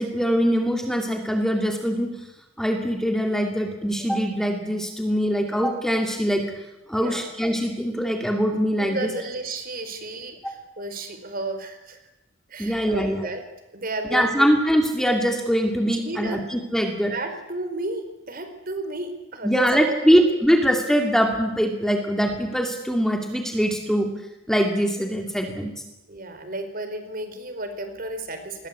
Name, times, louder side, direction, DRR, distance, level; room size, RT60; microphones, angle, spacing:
voice 1, 0.0-2.1 2.6-6.5 6.9-9.1 10.4-10.5 12.6-13.2 14.1-17.1 19.4-24.1 24.5-25.7, equal, ahead, 4 dB, 2.4 m, -22 dB
voice 2, 8.8-12.0 12.5-13.4 13.7-14.5 16.0-16.4 17.1-20.2 26.1-28.7, right 2 dB, 45° right, 8 dB, 4.6 m, -33 dB
27.5 x 21.0 x 8.4 m, 0.94 s
head